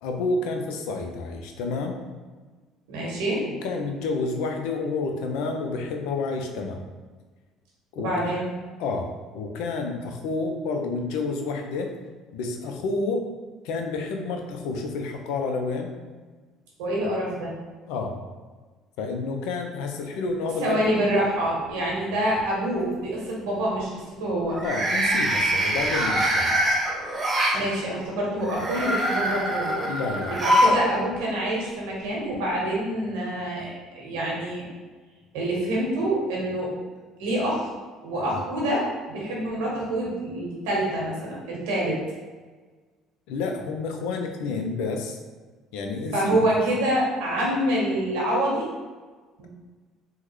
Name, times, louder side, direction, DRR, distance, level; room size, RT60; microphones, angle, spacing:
voice 1, 0.0-2.0 3.5-6.8 7.9-8.3 8.8-11.9 12.3-13.3 13.6-15.9 17.9-18.2 19.0-20.9 24.6-26.6 29.9-30.3 43.3-45.2 45.7-46.4, left 3 dB, 80° left, 3 dB, 0.4 m, -29 dB
voice 2, 2.9-3.4 8.0-8.4 16.8-17.5 20.6-23.9 24.2-24.6 27.5-29.8 30.3-34.6 35.3-36.7 37.2-37.7 38.0-42.0 46.1-48.7 49.4-49.5, right 1 dB, 90° right, -4 dB, 1.1 m, -26 dB
sound 1, 21.0-21.6 22.0-22.4 24.5-27.6 28.4-30.8 31.1-31.2 32.3-32.4, equal, 20° right, 0.8 m, -24 dB
3.6 x 2.1 x 3.1 m, 1.4 s
supercardioid pair, 95°, 0 cm